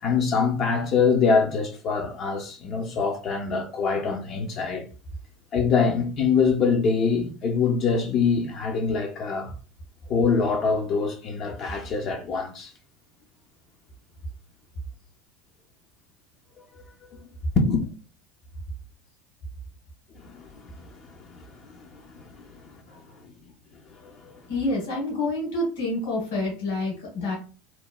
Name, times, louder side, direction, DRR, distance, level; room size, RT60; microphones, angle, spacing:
voice 1, 0.0-4.9 5.5-9.5 10.1-12.7 17.6-17.9 20.2-22.8 23.9-24.4, left 5 dB, 45° left, 0.5 m, -25 dB
voice 2, 24.5-27.4, left 2 dB, 70° left, 1.2 m, -28 dB
3.0 x 2.1 x 2.2 m
hypercardioid pair, 75°, 0 cm